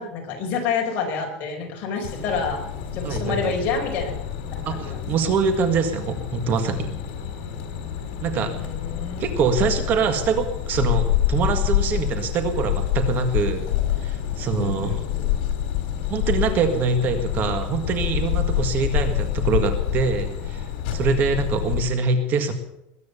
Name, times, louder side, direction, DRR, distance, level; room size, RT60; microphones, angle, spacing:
voice 1, 0.0-2.6 2.9-4.1 4.7-5.0 8.3-9.3 14.6-15.3, left 5 dB, 40° left, 2 dB, 4.9 m, -28 dB
sound 1, 2.0-21.8, left 11 dB, 65° left, 3.6 m, -27 dB
voice 2, 3.0-3.5 4.7-6.9 8.2-8.6 9.2-13.7 14.0-14.9 16.1-20.7 20.9-22.5, right 5 dB, 35° right, 8 dB, 1.8 m, -24 dB
21.0 x 9.3 x 6.9 m, 0.84 s
supercardioid pair, 150°, 5 cm